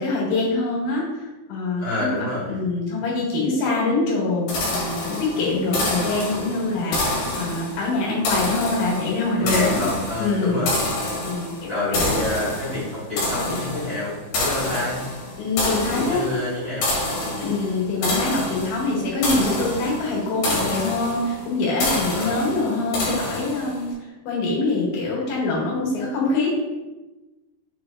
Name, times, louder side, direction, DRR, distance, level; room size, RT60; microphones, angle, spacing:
voice 1, 0.0-2.1 2.5-9.8 10.2-10.7 11.2-12.0 15.4-16.2 17.4-23.9 24.3-26.5, left 3 dB, 70° left, -6 dB, 4.2 m, -24 dB
voice 2, 1.8-2.5 5.6-5.9 9.4-10.8 11.7-15.0 15.9-16.9 17.2-17.4 22.1-22.4, left 2 dB, 85° left, -11 dB, 0.7 m, -28 dB
sound 1, 4.5-23.9, left 1 dB, 55° left, 3.6 m, -28 dB
8.1 x 6.3 x 2.5 m, 1.1 s
omnidirectional pair, 5.6 m